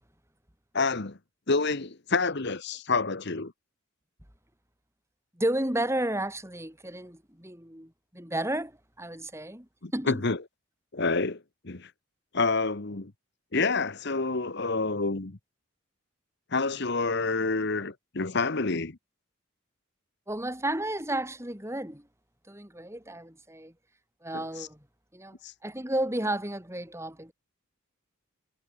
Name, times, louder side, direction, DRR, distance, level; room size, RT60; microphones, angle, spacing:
voice 1, 0.7-1.2 1.5-3.5 9.8-10.4 10.9-11.9 12.3-13.1 13.5-15.4 16.5-19.0 24.3-24.7 25.4-25.5, left 3 dB, 55° left, 1.3 m, -28 dB
voice 2, 5.4-10.2 20.3-22.1 22.5-23.7 24.2-24.8 25.1-25.4 25.6-27.3, right 1 dB, 15° right, 5.4 m, -32 dB
head